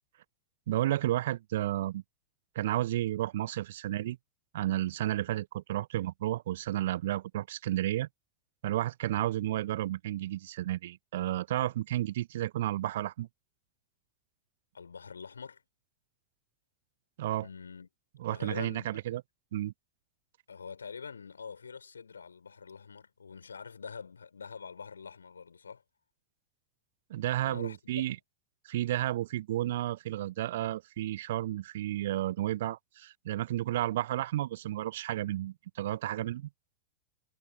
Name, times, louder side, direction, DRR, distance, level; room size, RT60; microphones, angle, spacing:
voice 1, 0.7-2.0 2.5-4.2 4.5-8.1 8.6-13.3 17.2-17.5 18.2-19.2 19.5-19.7 27.1-28.2 28.6-36.5, right 14 dB, 55° right, 0.4 m, -32 dB
voice 2, 14.7-15.6 17.4-17.9 18.3-19.0 20.5-25.8 27.4-28.2, left 5 dB, 75° left, 4.1 m, -45 dB
figure-of-eight pair, 90°, 0 cm